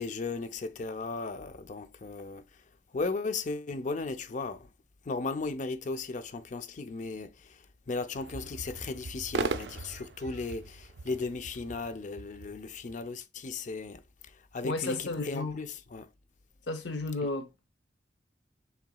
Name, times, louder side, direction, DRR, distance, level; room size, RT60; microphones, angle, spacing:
voice 1, 0.0-2.4 2.9-4.7 5.1-7.6 7.9-14.0 14.5-16.1, left 3 dB, 45° left, 0.5 m, -36 dB
sound 1, 8.1-13.0, right 4 dB, 70° right, 0.5 m, -38 dB
voice 2, 14.6-15.6 16.7-17.7, left 3 dB, 75° left, 0.9 m, -33 dB
5.8 x 3.9 x 2.3 m
head